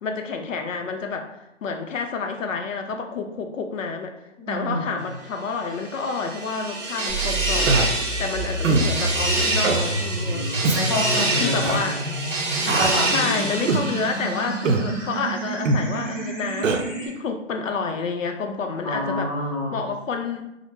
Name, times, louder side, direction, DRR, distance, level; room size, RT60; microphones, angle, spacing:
voice 1, 0.0-1.3 1.6-4.1 4.5-7.8 8.2-10.5 11.4-12.0 13.1-19.3 19.7-20.5, left 5 dB, 80° left, 4 dB, 0.5 m, -29 dB
voice 2, 4.4-4.9 10.2-11.9 12.6-13.4 18.8-19.8, left 1 dB, 20° left, -8 dB, 0.7 m, -28 dB
sound 1, 5.7-14.9, right 2 dB, 45° right, 0.9 m, -27 dB
sound 2, 7.1-17.1, right 1 dB, 20° right, 0.4 m, -30 dB
Human voice, 7.6-7.9 8.6-8.9 9.6-9.8 10.6-10.8 11.6-11.8 12.6-13.0 13.7-13.9 14.6-14.9 15.6-15.8 16.6-16.8, right 3 dB, 75° right, 0.5 m, -21 dB
3.1 x 2.0 x 3.1 m, 0.90 s
hypercardioid pair, 155°, 38 cm